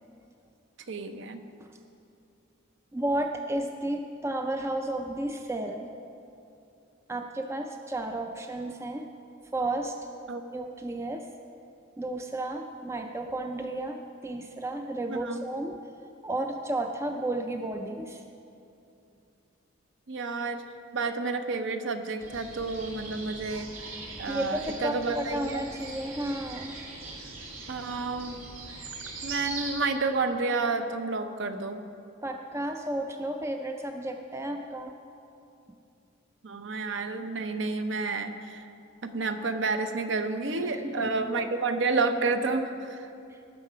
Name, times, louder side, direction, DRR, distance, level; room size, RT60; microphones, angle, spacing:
voice 1, 0.9-1.4 10.3-10.4 15.1-15.4 20.1-20.6 20.9-25.6 27.7-28.4 29.2-31.8 36.4-38.7 39.0-43.1, right 3 dB, 60° right, 7 dB, 0.7 m, -30 dB
voice 2, 2.9-5.9 7.1-9.1 9.5-10.0 10.5-11.3 12.0-15.8 16.2-18.2 24.3-26.8 32.2-35.0 40.6-41.3 43.3-43.4, right 1 dB, 15° right, 4 dB, 0.4 m, -32 dB
sound 1, 22.2-29.7, right 3 dB, 80° right, 2.1 m, -41 dB
17.5 x 6.5 x 5.0 m, 2.7 s
head